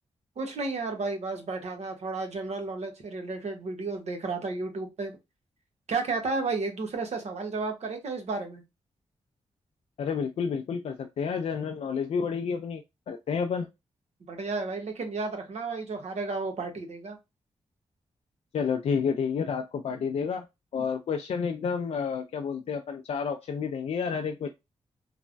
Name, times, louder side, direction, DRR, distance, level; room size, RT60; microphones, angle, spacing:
voice 1, 0.4-5.1 5.9-8.6 14.2-17.2, right 3 dB, 65° right, 3 dB, 1.0 m, -32 dB
voice 2, 10.0-13.7 18.5-20.5 20.7-24.5, left 6 dB, 60° left, 5 dB, 0.4 m, -30 dB
3.2 x 2.1 x 2.5 m, 0.23 s
cardioid pair, 60°, 12 cm